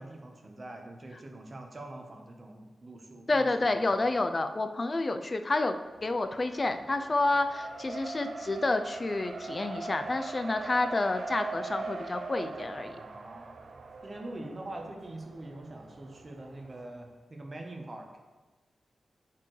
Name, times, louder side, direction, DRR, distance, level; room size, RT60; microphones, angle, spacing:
voice 1, 0.0-4.0 12.9-13.6 14.0-18.1, right 1 dB, 35° right, 2 dB, 1.0 m, -44 dB
voice 2, 3.3-5.8 6.0-13.0, left 2 dB, 35° left, 8 dB, 0.5 m, -29 dB
Race car auto racing, 5.9-16.9, right 4 dB, 65° right, 0.6 m, -42 dB
8.3 x 4.6 x 3.2 m, 1.3 s
wide cardioid pair, 105°, 0 cm